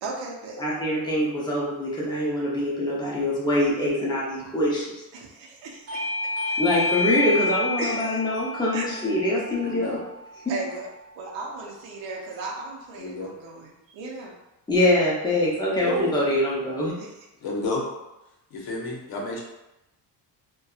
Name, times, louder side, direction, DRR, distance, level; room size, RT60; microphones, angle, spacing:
voice 1, 0.0-0.6 5.1-6.1 7.8-8.2 8.7-9.0 10.5-10.9 11.1-14.4 17.0-17.1, right 3 dB, 85° right, -2 dB, 0.6 m, -36 dB
voice 2, 0.6-4.9 6.6-10.0 14.7-16.9, left 1 dB, 10° left, -6 dB, 0.6 m, -24 dB
Bell / Doorbell, 5.9-11.1, left 2 dB, 35° right, 0.6 m, -30 dB
voice 3, 9.6-10.0 13.0-13.3 15.8-16.2 17.4-17.9 18.5-19.4, left 2 dB, 55° left, -1 dB, 0.7 m, -31 dB
2.6 x 2.2 x 2.3 m, 0.95 s
cardioid pair, 145°, 45 cm